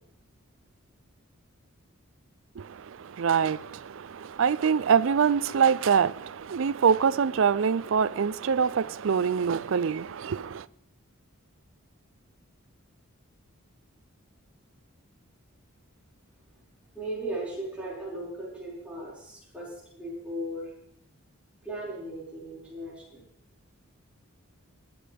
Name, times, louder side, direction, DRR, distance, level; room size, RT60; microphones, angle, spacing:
voice 1, 2.6-10.7, right 6 dB, 65° right, 0.4 m, -25 dB
voice 2, 16.9-20.7 21.6-23.2, right 1 dB, 5° right, 5.4 m, -37 dB
20.5 x 9.9 x 3.5 m
head